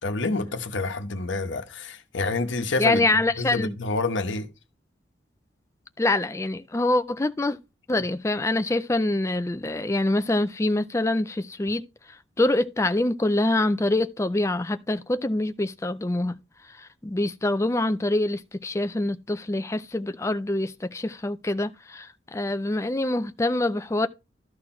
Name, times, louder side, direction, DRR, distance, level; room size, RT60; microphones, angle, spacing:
voice 1, 0.0-3.1 3.4-4.5, left 3 dB, 85° left, 1.0 m, -28 dB
voice 2, 2.8-3.7 6.0-7.6 7.9-11.8 12.4-16.4 16.8-24.1, left 2 dB, 15° left, 0.4 m, -25 dB
13.0 x 4.4 x 4.3 m
head